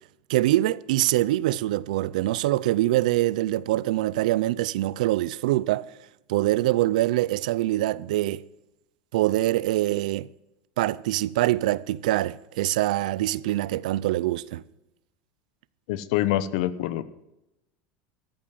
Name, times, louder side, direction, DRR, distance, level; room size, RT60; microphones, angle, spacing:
voice 1, 0.3-5.9 6.3-8.4 9.1-10.3 10.8-14.6, right 16 dB, 85° right, 0.5 m, -24 dB
voice 2, 15.9-17.0, left 13 dB, 65° left, 0.9 m, -25 dB
13.5 x 8.8 x 7.5 m
supercardioid pair, 170°, 4 cm